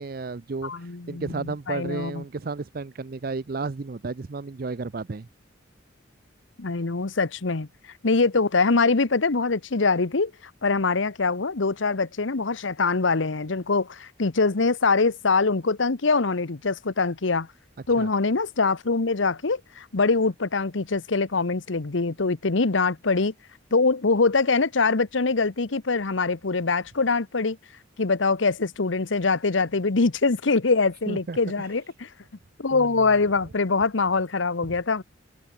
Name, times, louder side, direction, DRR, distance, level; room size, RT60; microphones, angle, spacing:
voice 1, 0.0-5.3 18.0-18.1 31.1-31.7 32.7-33.2, right 4 dB, 50° right, 0.5 m, -33 dB
voice 2, 0.6-2.2 6.6-7.7 8.0-10.3 10.6-17.5 17.9-23.3 23.7-27.6 28.0-32.1 32.6-35.0, left 4 dB, 80° left, 1.0 m, -23 dB
head